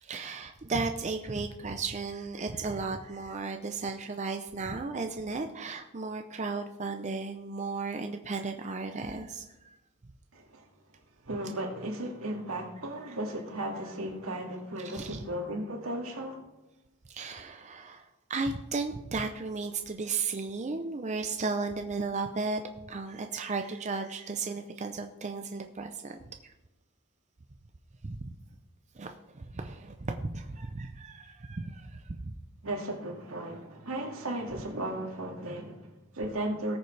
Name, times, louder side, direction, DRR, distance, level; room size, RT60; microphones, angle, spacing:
voice 1, 0.0-9.8 14.8-15.2 17.1-22.6 22.9-26.5 28.0-28.3 28.9-32.3, right 4 dB, 35° right, 0.6 m, -35 dB
voice 2, 10.3-10.7 11.2-16.5 32.6-36.8, right 1 dB, 80° right, 2.1 m, -35 dB
18.5 x 6.8 x 3.3 m
head